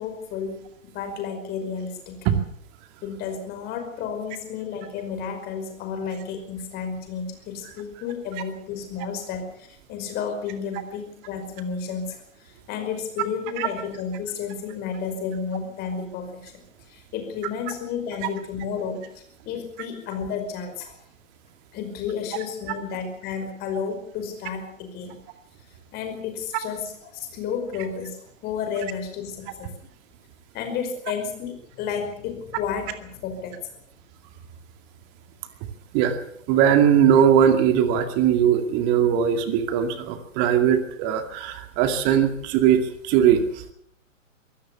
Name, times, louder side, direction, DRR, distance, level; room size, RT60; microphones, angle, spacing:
voice 1, 0.0-2.2 3.0-16.5 16.9-19.0 19.5-20.9 21.7-25.2 25.9-29.7 30.5-33.6, left 6 dB, 25° left, 6 dB, 5.3 m, -32 dB
voice 2, 36.5-43.7, right 9 dB, 25° right, 8 dB, 2.3 m, -20 dB
24.5 x 17.0 x 7.1 m, 0.68 s
figure-of-eight pair, 120°, 39 cm